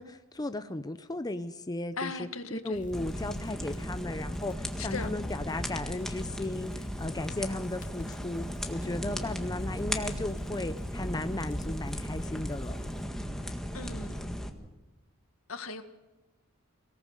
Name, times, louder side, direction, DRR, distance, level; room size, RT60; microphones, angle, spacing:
voice 1, 0.0-12.8, left 2 dB, 20° left, 0.7 m, -36 dB
voice 2, 2.0-2.8 4.8-5.1 13.7-14.3 15.5-15.8, left 4 dB, 75° left, 1.8 m, -38 dB
sound 1, 2.7-13.1, equal, 40° left, 2.2 m, -45 dB
sound 2, 2.9-14.5, equal, ahead, 1.7 m, -36 dB
24.0 x 18.0 x 6.5 m
head